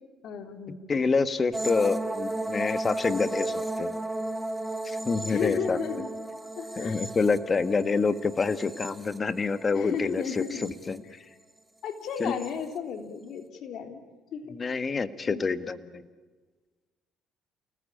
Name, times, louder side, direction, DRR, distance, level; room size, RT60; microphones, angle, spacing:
voice 1, 0.2-0.9 5.3-6.1 6.6-7.0 9.7-10.7 11.1-11.2 11.8-14.0 14.3-14.7 15.3-15.4, left 7 dB, 65° left, 7 dB, 3.4 m, -34 dB
voice 2, 0.9-3.9 4.8-5.8 6.8-11.0 12.2-12.3 14.5-16.1, left 4 dB, 30° left, 12 dB, 1.6 m, -27 dB
sound 1, 1.5-9.7 10.1-10.9 12.2-12.5, right 2 dB, 10° right, 1.7 m, -34 dB
29.0 x 20.0 x 8.7 m, 1.4 s
cardioid pair, 100°, 0 cm